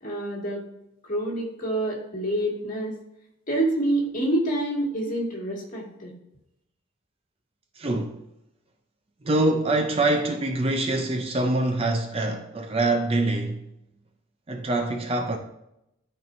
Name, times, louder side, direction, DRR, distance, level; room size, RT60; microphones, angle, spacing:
voice 1, 0.0-0.6 1.1-2.9 3.5-6.1, right 1 dB, 40° left, 1.9 m, -27 dB
voice 2, 7.8-8.2 9.2-13.7 14.5-15.4, right 2 dB, 30° right, 0.5 m, -24 dB
12.0 x 4.4 x 2.6 m
head